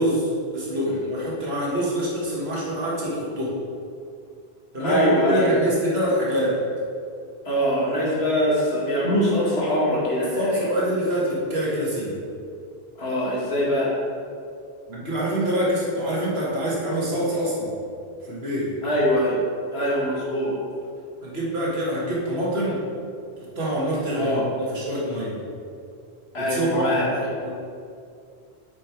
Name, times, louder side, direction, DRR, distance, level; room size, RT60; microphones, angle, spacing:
voice 1, 0.0-3.6 4.7-6.6 10.4-12.2 14.9-17.7 18.2-18.7 21.2-22.8 23.4-25.4 26.4-27.5, equal, 70° right, -5 dB, 2.0 m, -25 dB
voice 2, 4.8-5.5 7.5-10.7 13.0-13.9 18.8-19.4 19.7-20.5 24.1-24.4 26.3-27.1, equal, 75° left, -5 dB, 2.0 m, -23 dB
7.6 x 5.1 x 4.5 m, 2.4 s
omnidirectional pair, 1.1 m